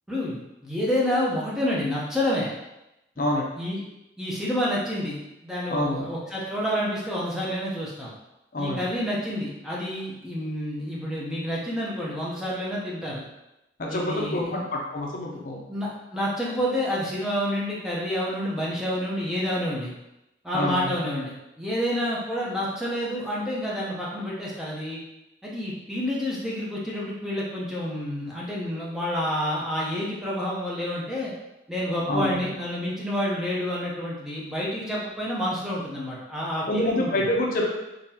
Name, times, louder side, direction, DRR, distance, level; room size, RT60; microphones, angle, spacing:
voice 1, 0.1-2.5 3.2-3.3 3.6-3.8 4.2-5.2 5.4-8.1 8.6-13.2 13.9-14.7 15.3-15.4 15.7-19.9 20.4-25.0 25.4-31.3 31.7-37.3, equal, 5° right, -6 dB, 0.6 m, -29 dB
voice 2, 5.7-6.1 8.5-8.8 13.8-15.6 20.5-20.9 32.1-32.4 36.7-37.7, left 1 dB, 50° left, -1 dB, 0.5 m, -26 dB
3.8 x 2.9 x 2.8 m, 0.91 s
head